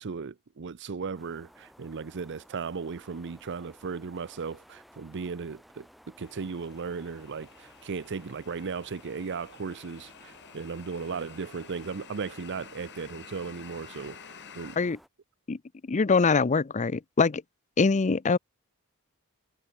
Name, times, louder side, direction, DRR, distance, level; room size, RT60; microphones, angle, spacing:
voice 1, 0.0-5.9 6.2-14.2 14.5-15.0, right 5 dB, 55° right, 0.6 m, -36 dB
sound 1, 1.1-15.1, equal, ahead, 6.4 m, -57 dB
sound 2, 6.2-14.8, left 7 dB, 55° left, 4.4 m, -50 dB
voice 2, 15.9-17.4 17.8-18.4, left 4 dB, 35° left, 0.5 m, -23 dB
head